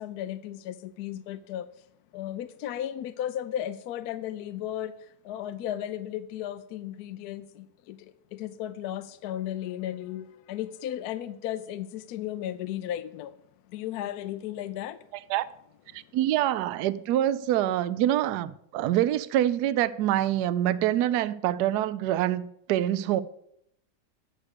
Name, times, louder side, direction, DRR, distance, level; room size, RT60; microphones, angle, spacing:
voice 1, 0.0-1.7 2.1-13.4 13.7-15.0 16.0-16.1, left 11 dB, 70° left, 1.0 m, -35 dB
voice 2, 16.1-23.2, right 12 dB, 70° right, 1.0 m, -25 dB
9.6 x 6.5 x 6.6 m
omnidirectional pair, 2.0 m